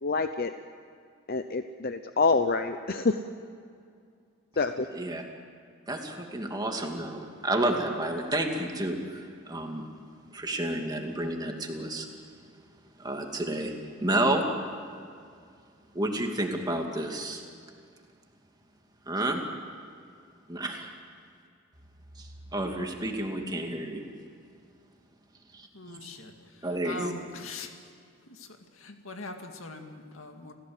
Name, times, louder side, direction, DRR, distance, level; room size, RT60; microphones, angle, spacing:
voice 1, 0.0-0.5 1.3-3.2 4.6-4.9, left 4 dB, 50° left, 8 dB, 0.7 m, -26 dB
voice 2, 5.9-9.8 10.3-12.1 13.0-13.7 14.0-14.4 15.9-17.4 19.1-19.4 20.5-20.8 22.2-24.0 25.5-26.0 26.6-27.1, right 1 dB, 20° right, 2 dB, 2.5 m, -30 dB
voice 3, 25.7-26.3 26.8-27.7 28.3-28.5 28.8-30.5, left 3 dB, 80° left, 4 dB, 2.2 m, -41 dB
29.5 x 15.5 x 7.9 m, 2.3 s
head